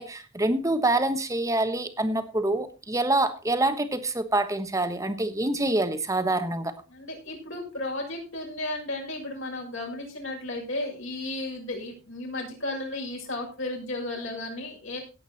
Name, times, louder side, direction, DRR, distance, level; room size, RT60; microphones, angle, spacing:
voice 1, 0.0-6.7, right 2 dB, 15° right, 10 dB, 1.2 m, -26 dB
voice 2, 6.9-15.0, left 2 dB, 65° left, -1 dB, 7.0 m, -34 dB
17.0 x 8.4 x 4.1 m, 0.31 s
head